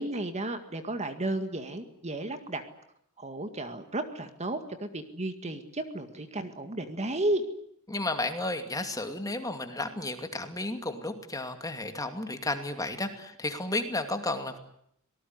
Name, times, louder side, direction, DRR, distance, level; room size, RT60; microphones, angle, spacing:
voice 1, 0.0-2.6 3.2-7.5, right 1 dB, 30° right, 9 dB, 2.0 m, -33 dB
voice 2, 7.9-14.6, left 2 dB, 15° left, 7 dB, 2.5 m, -33 dB
25.5 x 19.0 x 9.6 m, 0.73 s
head